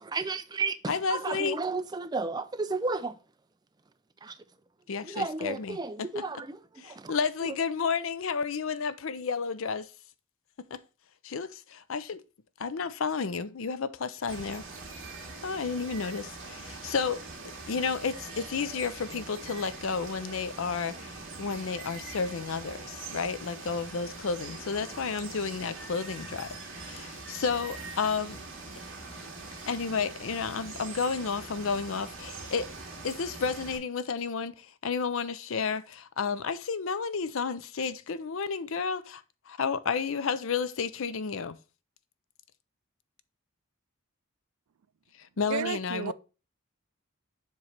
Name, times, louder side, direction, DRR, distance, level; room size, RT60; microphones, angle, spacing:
voice 1, 0.0-3.2 4.2-4.4 5.0-7.1, right 3 dB, 20° right, 0.4 m, -33 dB
voice 2, 0.9-1.6 4.9-6.2 6.8-9.9 10.7-10.8 11.2-12.2 12.6-14.6 15.4-17.2 17.7-28.4 29.7-32.7 33.0-41.6 45.2-46.1, left 5 dB, 65° left, 0.5 m, -32 dB
Water, 14.3-33.8, right 3 dB, 60° right, 2.0 m, -43 dB
voice 3, 45.5-46.1, right 8 dB, 85° right, 0.4 m, -32 dB
7.3 x 3.2 x 5.7 m
head